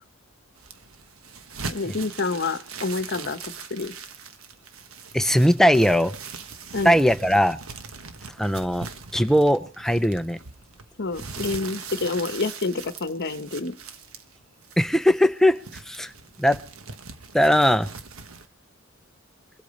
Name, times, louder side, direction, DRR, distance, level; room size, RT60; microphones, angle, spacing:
sound 1, 0.6-18.5, right 5 dB, 80° right, 1.3 m, -41 dB
voice 1, 1.7-3.9 6.7-7.0 11.0-13.8, left 3 dB, 55° left, 12 dB, 1.0 m, -28 dB
voice 2, 5.1-6.1 6.8-7.6 8.4-8.9 9.1-10.4 14.8-15.6 15.9-16.1 16.4-16.6 17.3-17.9, equal, ahead, 11 dB, 0.6 m, -19 dB
24.0 x 8.3 x 5.3 m, 0.39 s
head